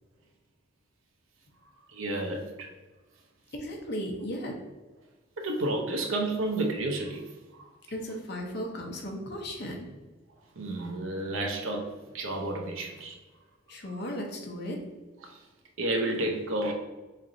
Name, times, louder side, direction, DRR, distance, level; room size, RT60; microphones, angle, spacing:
voice 1, 1.9-2.7 5.4-7.7 10.6-13.2 15.2-15.4 15.8-16.7, right 2 dB, 85° right, 3 dB, 0.7 m, -31 dB
voice 2, 3.5-4.5 7.9-9.9 13.7-14.8, equal, 55° left, 1 dB, 0.7 m, -36 dB
3.2 x 2.5 x 3.9 m, 1.2 s
head